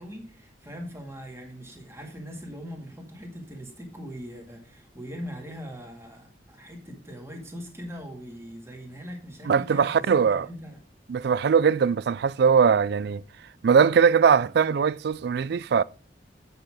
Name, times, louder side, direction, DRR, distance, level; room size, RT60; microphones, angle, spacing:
voice 1, 0.0-10.8, equal, 15° right, 2.1 m, -41 dB
voice 2, 9.5-10.5 11.1-13.2 13.6-15.8, right 6 dB, 60° right, 0.3 m, -21 dB
8.0 x 6.7 x 4.8 m
head